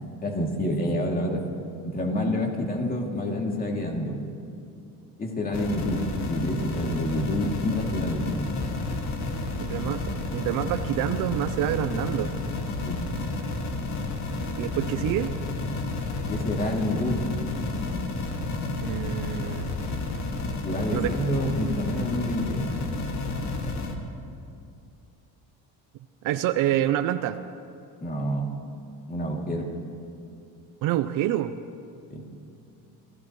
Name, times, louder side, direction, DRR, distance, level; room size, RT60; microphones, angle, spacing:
voice 1, 0.2-1.4 1.8-4.2 5.2-6.0 6.3-8.3 12.8-13.0 16.3-17.2 20.6-22.6 28.0-28.6 29.1-29.7 32.1-32.2, left 1 dB, 25° left, 0 dB, 2.6 m, -28 dB
sound 1, 5.5-23.9, left 2 dB, 50° left, 2.0 m, -31 dB
voice 2, 9.6-12.3 14.6-15.3 18.8-19.7 20.9-21.1 26.2-27.4 30.8-31.5, right 12 dB, 65° right, 9 dB, 0.6 m, -27 dB
27.5 x 16.0 x 3.1 m, 2.5 s
cardioid pair, 110°, 36 cm